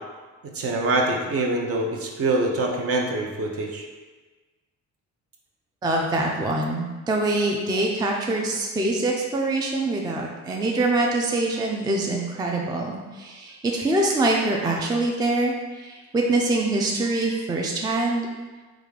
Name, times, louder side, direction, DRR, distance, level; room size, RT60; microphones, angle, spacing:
voice 1, 0.4-3.9, right 2 dB, 50° right, 0 dB, 0.6 m, -25 dB
voice 2, 5.8-18.3, right 2 dB, 15° right, 0 dB, 0.3 m, -24 dB
3.6 x 2.4 x 3.3 m, 1.3 s
cardioid pair, 90°, 30 cm